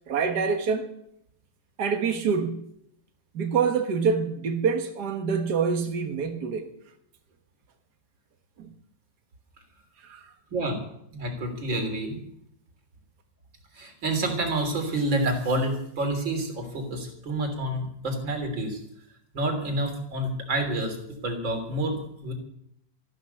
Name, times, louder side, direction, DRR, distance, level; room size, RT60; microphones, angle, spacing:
voice 1, 0.1-0.8 1.8-2.7 3.3-6.7 8.6-8.7 10.0-10.2, right 5 dB, 60° right, 4 dB, 2.0 m, -26 dB
voice 2, 11.1-12.2 13.8-18.8 19.3-21.0 21.2-22.0 22.2-22.3, right 1 dB, 90° right, 4 dB, 4.2 m, -28 dB
14.5 x 12.5 x 6.9 m, 0.73 s
omnidirectional pair, 2.0 m